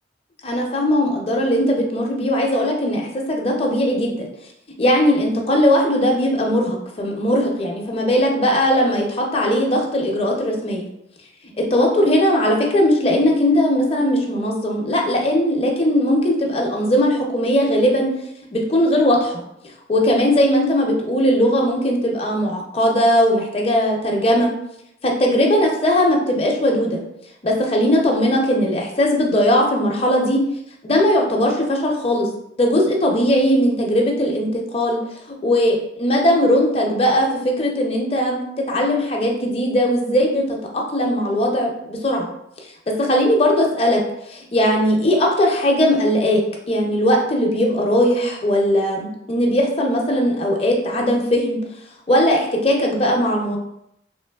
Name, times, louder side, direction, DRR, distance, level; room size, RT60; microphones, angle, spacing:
voice 1, 0.4-4.3 4.8-10.8 11.6-18.1 18.5-19.4 19.9-24.5 25.0-27.0 27.4-30.4 30.8-32.3 32.6-35.0 35.4-42.3 43.0-44.0 44.3-46.4 46.7-51.6 52.1-53.6, equal, 35° left, 0 dB, 0.5 m, -19 dB
3.1 x 3.0 x 2.3 m, 0.77 s
head